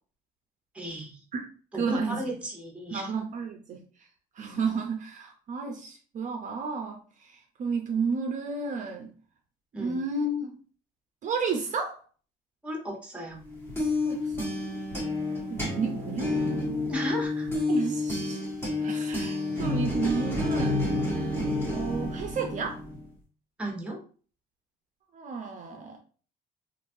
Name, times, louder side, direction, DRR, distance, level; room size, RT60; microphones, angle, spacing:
voice 1, 0.7-1.2 1.7-3.1 9.7-10.0 12.6-13.4 16.9-17.6 23.6-24.0, equal, 5° right, 0.9 m, -34 dB
voice 2, 1.7-2.2 2.9-4.1 4.3-9.1 9.8-10.5 11.2-12.0 14.0-14.5 15.5-16.6 17.7-18.4 18.8-20.8 21.7-22.8 25.1-26.0, right 4 dB, 45° right, 0.5 m, -32 dB
sound 1, 13.4-23.1, left 2 dB, 15° left, 1.2 m, -29 dB
3.0 x 2.5 x 2.5 m
cardioid pair, 110°, 17 cm